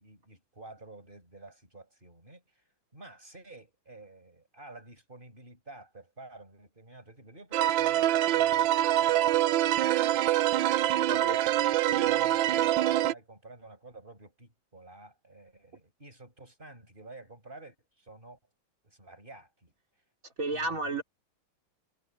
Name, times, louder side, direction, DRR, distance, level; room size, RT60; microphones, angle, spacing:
voice 1, 0.0-2.6 2.9-9.8 10.5-18.4 18.8-19.7 20.5-21.0, right 2 dB, 25° right, 7.5 m, -51 dB
sound 1, 7.5-13.1, right 13 dB, 75° right, 1.3 m, -25 dB
voice 2, 20.4-21.0, right 2 dB, 40° right, 3.6 m, -32 dB
omnidirectional pair, 2.3 m